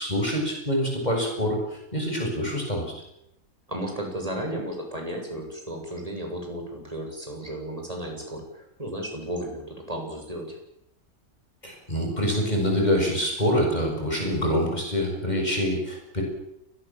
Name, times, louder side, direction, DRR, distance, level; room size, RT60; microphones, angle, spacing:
voice 1, 0.0-2.9 11.6-16.2, equal, 30° left, 1 dB, 7.6 m, -25 dB
voice 2, 3.7-10.6, right 1 dB, 25° right, 2 dB, 7.6 m, -34 dB
29.0 x 22.0 x 7.6 m, 0.80 s
omnidirectional pair, 1.5 m